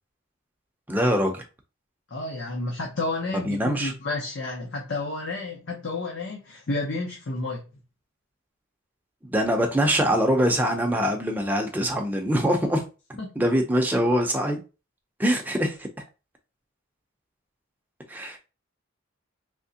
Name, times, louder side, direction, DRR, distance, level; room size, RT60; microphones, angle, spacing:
voice 1, 0.9-1.4 3.4-3.9 9.2-12.8 13.4-14.6 15.2-15.9 18.1-18.4, equal, 10° right, 0.6 m, -23 dB
voice 2, 2.1-7.6 13.2-13.3, left 2 dB, 55° left, 0.7 m, -31 dB
3.5 x 2.9 x 2.7 m
head